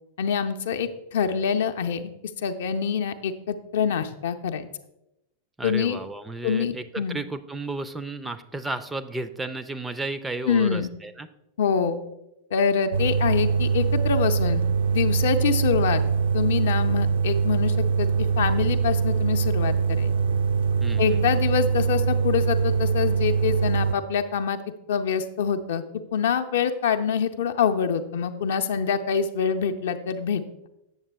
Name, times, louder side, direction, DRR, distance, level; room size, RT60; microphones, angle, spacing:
voice 1, 0.2-2.1 2.4-4.7 5.6-6.0 6.4-7.2 10.5-10.9 11.6-12.0 12.5-14.6 14.9-16.0 16.3-18.1 18.4-20.1 21.0-24.6 24.9-25.8 26.1-30.4, left 7 dB, 60° left, 8 dB, 0.5 m, -25 dB
voice 2, 5.6-11.3 20.8-21.3, right 3 dB, 10° right, 11 dB, 0.4 m, -33 dB
sound 1, 12.9-23.9, right 5 dB, 60° right, 0.5 m, -23 dB
8.1 x 7.1 x 3.3 m, 0.88 s
figure-of-eight pair, 90°, 0 cm